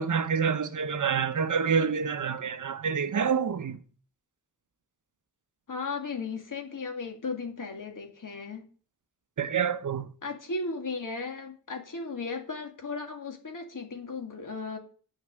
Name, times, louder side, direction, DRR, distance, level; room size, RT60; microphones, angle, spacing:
voice 1, 0.0-3.8 9.4-10.1, right 6 dB, 50° right, 0.8 m, -27 dB
voice 2, 5.7-8.6 10.2-14.8, left 4 dB, 55° left, 2.5 m, -36 dB
10.0 x 6.6 x 7.8 m
wide cardioid pair, 170°, 39 cm